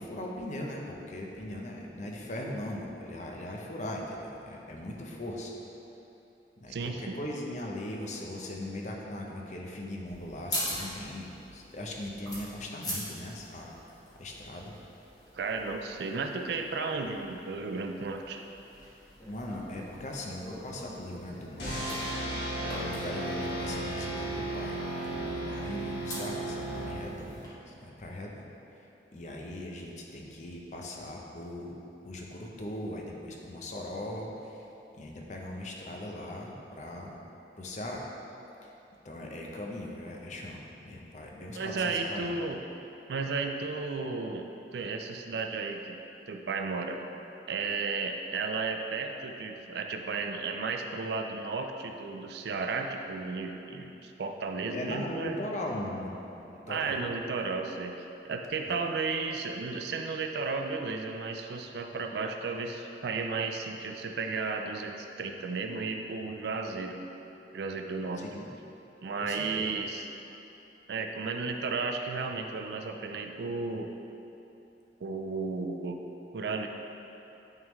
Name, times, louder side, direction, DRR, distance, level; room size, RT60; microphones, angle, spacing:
voice 1, 0.0-5.5 6.6-13.7 14.2-14.7 19.3-22.3 22.6-28.5 29.1-31.8 32.0-34.7 34.9-37.2 37.6-38.1 38.6-38.7 39.0-42.4 54.7-56.2 56.5-57.0 58.7-58.8 68.2-68.5 69.2-69.7, left 1 dB, 45° left, -1 dB, 0.6 m, -39 dB
voice 2, 6.7-7.2 15.3-18.4 41.5-42.6 43.1-44.5 44.7-46.0 46.3-47.0 47.5-55.5 56.7-67.0 67.5-68.3 69.0-70.1 70.9-73.9 75.0-76.0 76.3-76.7, right 4 dB, 65° right, 4 dB, 0.4 m, -34 dB
sound 1, 10.1-27.5, equal, 25° left, 1.2 m, -43 dB
sound 2, 21.6-27.5, right 1 dB, 65° left, 1.4 m, -35 dB
9.0 x 3.6 x 3.1 m, 3.0 s
head